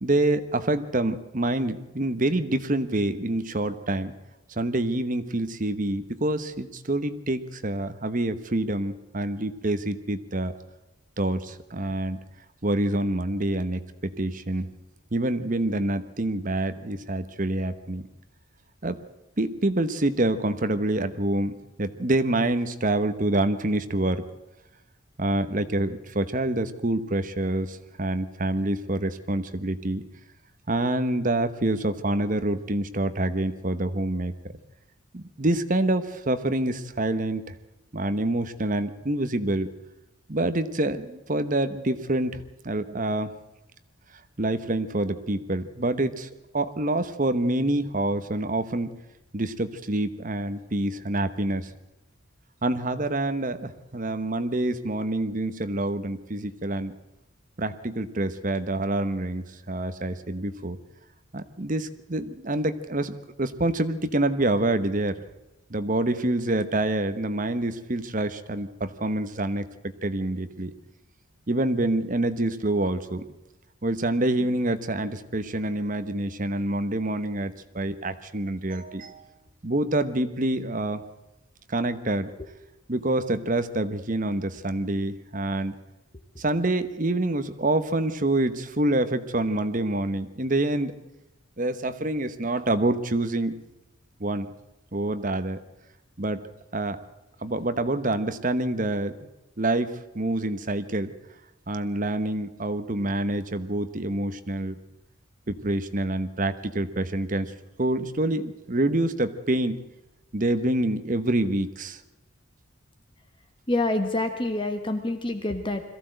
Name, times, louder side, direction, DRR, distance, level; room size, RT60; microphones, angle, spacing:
voice 1, 0.0-4.1 4.5-10.5 11.2-12.2 12.6-14.7 15.1-18.1 18.8-19.0 19.4-24.2 25.2-30.0 30.7-34.3 35.1-37.4 37.9-39.7 40.3-43.3 44.4-49.0 49.3-51.7 52.6-56.9 57.6-60.8 61.3-65.2 65.7-70.7 71.5-73.2 73.8-79.2 79.6-81.0 81.7-82.3 82.9-85.8 86.4-90.9 91.6-93.6 94.2-94.5 94.9-95.6 96.2-96.4 96.7-97.0 97.4-99.2 99.6-101.1 101.7-104.8 105.5-107.5 107.8-109.8 110.3-112.0, right 1 dB, 40° right, 11 dB, 1.1 m, -27 dB
voice 2, 113.7-115.8, left 2 dB, 25° left, 7 dB, 1.3 m, -27 dB
22.0 x 15.0 x 7.8 m, 0.98 s
head